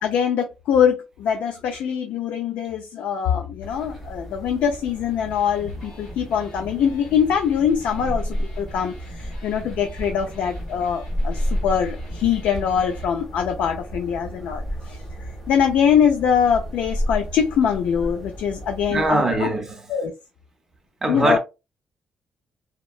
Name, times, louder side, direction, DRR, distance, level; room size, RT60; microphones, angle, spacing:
voice 1, 0.0-15.0 15.5-19.5 19.9-20.1 21.1-21.4, left 8 dB, 90° left, 0.3 m, -23 dB
sound 1, 3.6-19.1, equal, 10° left, 1.1 m, -32 dB
Electric guitar, 5.0-13.0, left 1 dB, 40° left, 1.1 m, -45 dB
voice 2, 18.9-19.8 21.0-21.4, right 2 dB, 20° right, 0.5 m, -22 dB
2.8 x 2.1 x 2.3 m
cardioid pair, 170°, 2 cm